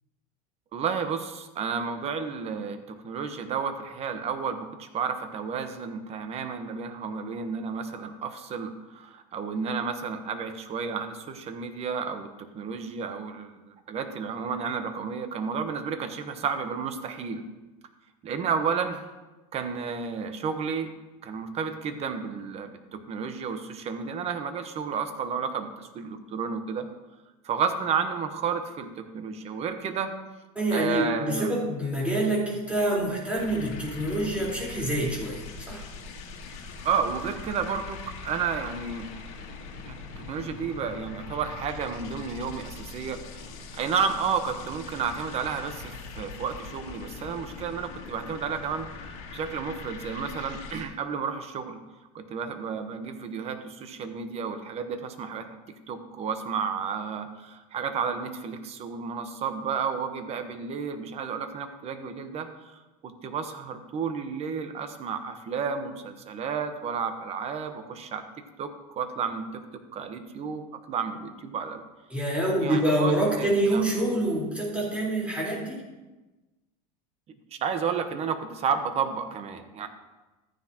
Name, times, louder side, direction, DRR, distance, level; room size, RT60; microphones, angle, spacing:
voice 1, 0.7-17.4 18.2-19.0 19.5-20.9 21.2-26.9 27.4-30.1 30.7-31.5 36.8-39.1 39.9-40.0 40.3-43.5 43.7-48.9 49.3-51.8 52.1-55.5 55.9-68.2 68.6-69.5 69.9-71.8 72.6-73.1 73.4-73.9 77.6-79.9, right 6 dB, 35° right, 8 dB, 1.1 m, -31 dB
voice 2, 30.6-35.9 72.1-75.8, right 1 dB, 5° right, -5 dB, 4.1 m, -26 dB
sound 1, 33.3-50.8, left 4 dB, 65° left, 2.4 m, -42 dB
14.0 x 9.7 x 2.9 m, 1.1 s
supercardioid pair, 135°, 19 cm